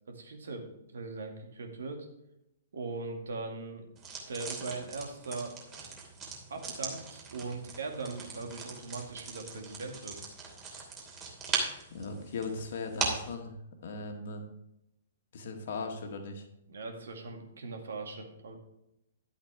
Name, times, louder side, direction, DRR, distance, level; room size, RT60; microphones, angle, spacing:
voice 1, 0.1-0.7 0.9-2.1 2.7-3.9 4.3-5.5 6.5-10.2 16.7-18.6, right 3 dB, 65° right, 4 dB, 2.1 m, -40 dB
sound 1, 4.0-13.3, right 4 dB, 25° right, 2.9 m, -39 dB
voice 2, 11.9-13.5 13.8-14.4 15.3-16.5, left 3 dB, 50° left, 3 dB, 1.8 m, -38 dB
11.5 x 8.2 x 3.5 m, 0.84 s
figure-of-eight pair, 115°, 0 cm